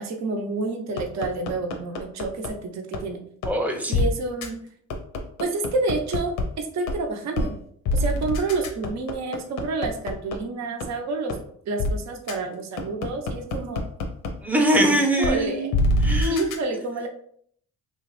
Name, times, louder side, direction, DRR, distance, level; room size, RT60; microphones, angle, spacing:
voice 1, 0.0-3.2 3.9-4.6 5.4-7.6 7.9-11.4 11.7-13.9 15.0-15.7 16.3-17.1, right 3 dB, 65° right, 4 dB, 0.6 m, -29 dB
sound 1, 1.0-2.5 2.9-3.0 3.4-3.5 3.9-4.0 4.4-4.5 4.9-6.4 6.9-7.0 7.4-7.5 7.9-10.3 10.8-10.9 11.3-11.4 11.8-11.9 12.3-12.4 12.8-14.3 14.7-14.8 15.2-15.3 15.7-16.6, left 2 dB, 85° left, 0.6 m, -24 dB
voice 2, 3.5-4.0 14.4-15.8 16.0-16.4, right 1 dB, 5° right, 1 dB, 0.6 m, -22 dB
2.9 x 2.3 x 3.0 m, 0.63 s
cardioid pair, 90°, 30 cm